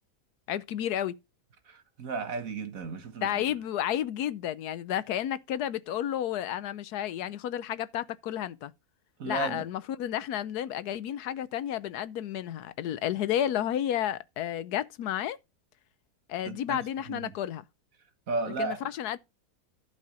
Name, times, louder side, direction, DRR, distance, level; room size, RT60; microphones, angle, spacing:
voice 1, 0.5-1.2 3.2-8.7 9.2-15.4 16.3-17.6 18.6-19.2, left 11 dB, 80° left, 1.2 m, -31 dB
voice 2, 1.7-3.3 9.2-9.7 16.4-16.8 17.1-17.3 18.3-18.8, right 3 dB, 60° right, 1.8 m, -34 dB
11.5 x 5.4 x 5.1 m
omnidirectional pair, 1.7 m